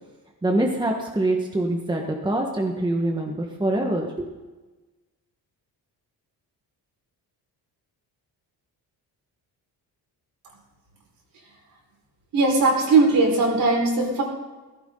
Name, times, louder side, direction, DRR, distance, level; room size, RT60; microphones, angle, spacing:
voice 1, 0.4-4.3, right 1 dB, 10° right, 1 dB, 1.4 m, -24 dB
voice 2, 12.3-14.2, right 3 dB, 55° right, 0 dB, 4.9 m, -19 dB
17.5 x 16.0 x 3.9 m, 1.2 s
cardioid pair, 155°, 39 cm